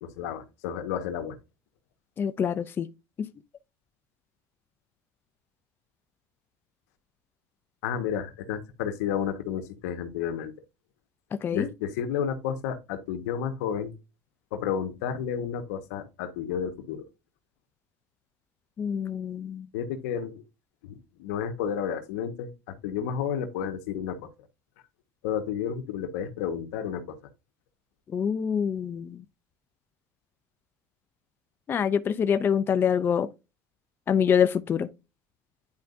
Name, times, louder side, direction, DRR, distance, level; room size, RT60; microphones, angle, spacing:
voice 1, 0.0-1.4 7.8-10.5 11.5-13.9 14.5-17.1 19.7-20.4 20.8-24.3 25.2-27.2, left 8 dB, 85° left, 1.5 m, -31 dB
voice 2, 2.2-2.9 3.2-3.3 11.4-11.7 18.8-19.7 28.1-29.2 31.7-33.3 34.1-34.9, left 7 dB, 25° left, 0.5 m, -25 dB
10.5 x 4.9 x 2.7 m
supercardioid pair, 135°, 8 cm